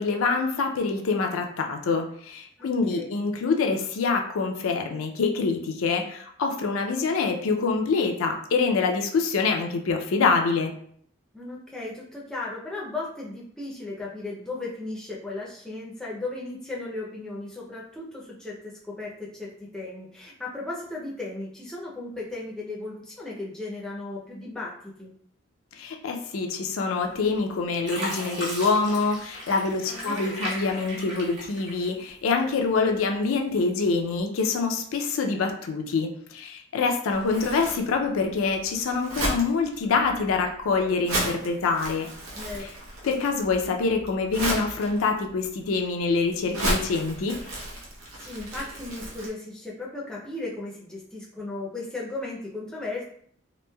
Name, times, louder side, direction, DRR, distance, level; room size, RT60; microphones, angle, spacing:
voice 1, 0.0-10.7 25.8-42.1 42.6-42.7 43.0-47.3, left 4 dB, 85° left, 3 dB, 0.4 m, -25 dB
voice 2, 2.6-3.2 11.3-24.7 25.0-25.1 29.9-30.2 42.4-42.6 48.2-53.0, left 2 dB, 5° left, -5 dB, 0.4 m, -36 dB
Fill (with liquid), 27.1-27.5 27.8-32.2 32.7-33.5 34.0-34.2, equal, 55° right, 1.0 m, -36 dB
Crumpling crinkling, 37.1-49.3, right 1 dB, 90° right, 0.8 m, -34 dB
3.0 x 2.5 x 2.2 m, 0.63 s
head